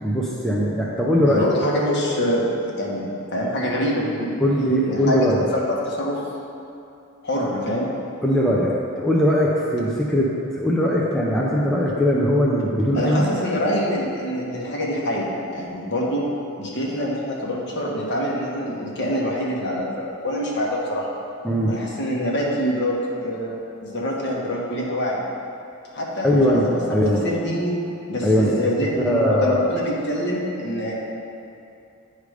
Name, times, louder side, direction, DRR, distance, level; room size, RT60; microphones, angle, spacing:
voice 1, 0.0-1.5 4.4-5.5 8.2-13.3 21.4-21.7 26.2-27.2 28.2-28.5 29.0-29.8, equal, ahead, -5 dB, 0.5 m, -20 dB
voice 2, 1.2-4.3 4.8-5.2 5.5-6.2 7.2-7.9 12.9-16.2 16.6-21.1 21.7-25.2 25.9-26.6 27.2-27.7 28.1-30.9, equal, 50° left, -4 dB, 1.2 m, -25 dB
9.5 x 3.3 x 5.0 m, 2.6 s
head